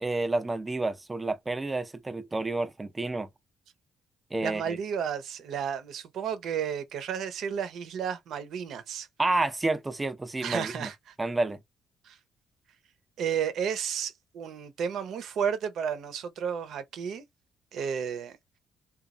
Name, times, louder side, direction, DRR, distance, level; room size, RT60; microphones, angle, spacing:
voice 1, 0.0-3.3 4.3-4.8 9.2-10.9 11.2-11.6, right 2 dB, 20° right, 0.5 m, -29 dB
voice 2, 4.4-9.1 10.4-11.1 12.1-12.2 13.2-17.2 17.7-18.4, right 7 dB, 75° right, 0.6 m, -32 dB
3.0 x 2.3 x 2.4 m
cardioid pair, 90°, 0 cm